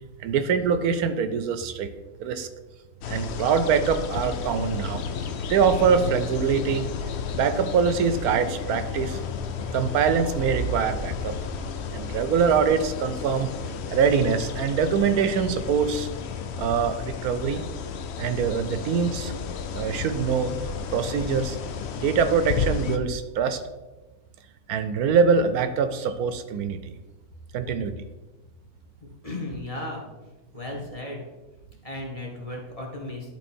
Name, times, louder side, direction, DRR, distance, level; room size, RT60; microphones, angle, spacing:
voice 1, 0.2-1.9 2.2-2.5 3.1-5.0 5.5-6.9 7.3-9.2 9.7-11.3 11.9-13.5 13.9-16.1 16.6-17.6 18.2-19.3 19.7-20.5 20.9-21.6 22.0-23.6 24.7-26.9 27.5-27.9, right 6 dB, 80° right, 10 dB, 1.1 m, -24 dB
sound 1, 3.0-23.0, left 6 dB, 65° left, 0.7 m, -32 dB
voice 2, 29.2-30.1 30.5-31.2 31.8-33.3, left 1 dB, 25° left, -1 dB, 1.4 m, -35 dB
11.5 x 3.9 x 4.3 m, 1.2 s
omnidirectional pair, 1.6 m